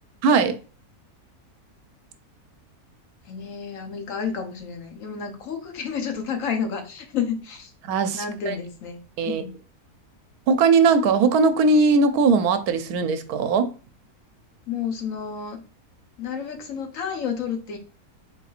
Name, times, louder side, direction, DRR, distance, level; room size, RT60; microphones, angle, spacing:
voice 1, 0.2-0.6 7.9-8.6 9.2-9.4 10.5-13.7, right 4 dB, 80° right, 1.1 m, -19 dB
voice 2, 3.3-7.7 8.1-9.6 14.7-15.6 16.2-17.8, left 7 dB, 65° left, 1.2 m, -30 dB
4.2 x 3.9 x 2.4 m
omnidirectional pair, 1.6 m